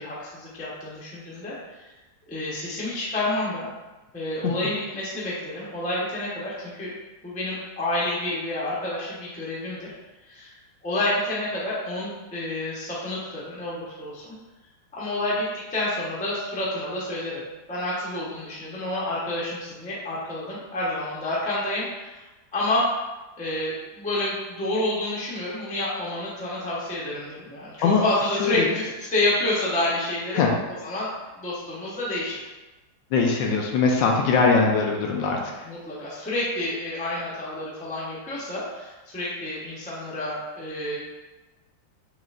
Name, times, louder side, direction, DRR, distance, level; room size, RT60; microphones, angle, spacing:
voice 1, 0.0-1.5 2.3-3.7 4.1-6.9 7.2-9.9 10.3-10.5 10.8-14.3 15.0-17.4 17.7-22.2 22.5-22.9 23.4-30.5 30.8-31.1 31.3-32.4 35.6-41.0, left 1 dB, 10° left, -7 dB, 0.5 m, -29 dB
voice 2, 33.1-35.7, left 4 dB, 75° left, 1 dB, 1.2 m, -21 dB
4.7 x 3.1 x 2.5 m, 1.1 s
omnidirectional pair, 2.1 m